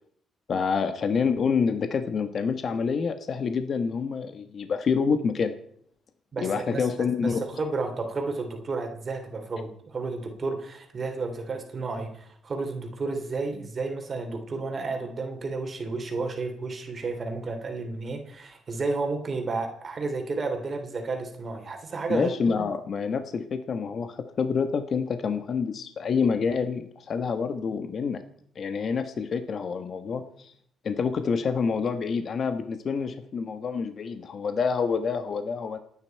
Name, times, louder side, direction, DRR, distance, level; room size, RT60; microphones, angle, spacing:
voice 1, 0.5-5.5 6.4-7.4 22.1-28.2 28.5-30.5 30.8-35.8, left 5 dB, 50° left, 9 dB, 1.2 m, -27 dB
voice 2, 6.3-6.9 7.2-22.3, right 3 dB, 40° right, 4 dB, 2.8 m, -32 dB
28.5 x 9.8 x 4.5 m, 0.67 s
cardioid pair, 90°, 0 cm